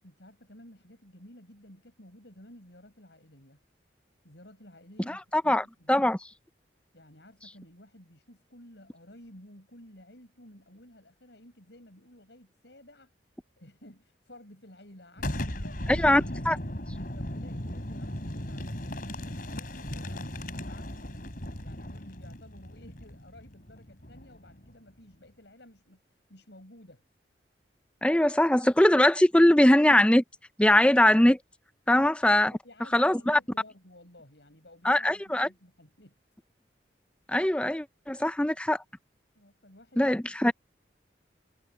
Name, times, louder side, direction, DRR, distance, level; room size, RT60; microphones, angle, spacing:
voice 1, 0.0-3.6 4.2-6.1 6.9-13.1 13.6-16.1 17.1-21.2 21.6-26.0 26.3-27.0 31.9-32.1 32.5-36.2 39.3-40.2, left 1 dB, 70° left, 7.3 m, -53 dB
voice 2, 5.1-6.2 15.9-16.6 28.0-30.2 30.6-31.4 31.9-32.5 32.9-33.4 34.8-35.5 37.3-38.8 40.0-40.5, left 1 dB, 5° left, 0.5 m, -22 dB
Boom, 15.2-24.7, left 1 dB, 50° left, 3.4 m, -37 dB
head